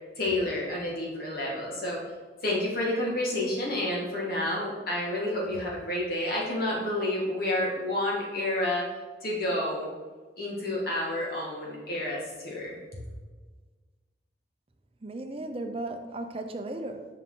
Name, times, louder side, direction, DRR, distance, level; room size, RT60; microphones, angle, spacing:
voice 1, 0.2-2.0 2.4-8.8 9.2-9.9 10.4-12.8, left 1 dB, 55° left, -4 dB, 1.9 m, -29 dB
voice 2, 15.0-17.1, right 2 dB, 30° right, 6 dB, 0.6 m, -35 dB
7.5 x 5.4 x 3.8 m, 1.4 s
head